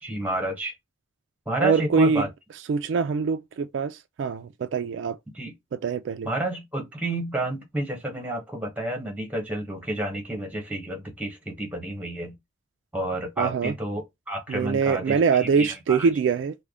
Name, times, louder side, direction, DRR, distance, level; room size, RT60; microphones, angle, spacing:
voice 1, 0.0-0.7 1.5-2.3 5.3-5.5 6.2-12.3 12.9-16.1, right 1 dB, 10° right, 1.0 m, -30 dB
voice 2, 1.6-2.3 2.7-5.2 5.7-6.3 13.4-13.7 14.5-16.5, right 5 dB, 70° right, 0.3 m, -24 dB
3.3 x 2.2 x 3.6 m
head